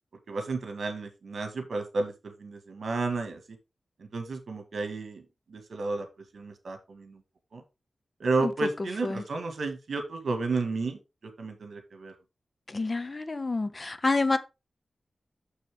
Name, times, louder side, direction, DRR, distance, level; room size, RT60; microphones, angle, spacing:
voice 1, 0.3-3.4 4.0-5.2 5.5-6.1 6.3-7.2 7.5-7.6 8.2-11.0 11.4-12.1, right 3 dB, 70° right, 1.7 m, -32 dB
voice 2, 12.7-14.4, left 3 dB, 30° left, 0.7 m, -28 dB
6.7 x 6.6 x 3.6 m
wide cardioid pair, 135°, 0 cm